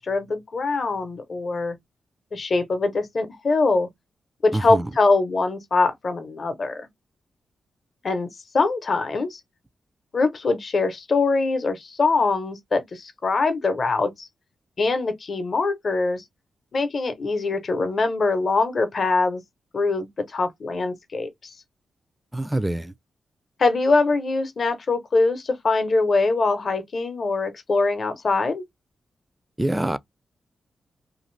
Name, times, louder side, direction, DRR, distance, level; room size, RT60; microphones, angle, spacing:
voice 1, 0.0-1.8 2.3-3.9 4.4-6.9 8.0-8.3 8.5-9.4 10.1-14.3 14.8-16.2 16.7-19.4 19.7-21.5 23.6-28.6, left 3 dB, 55° left, 0.7 m, -23 dB
voice 2, 4.5-4.9 22.3-22.9 29.6-30.0, right 1 dB, 15° right, 0.4 m, -25 dB
2.6 x 2.5 x 3.2 m
cardioid pair, 55°, 0 cm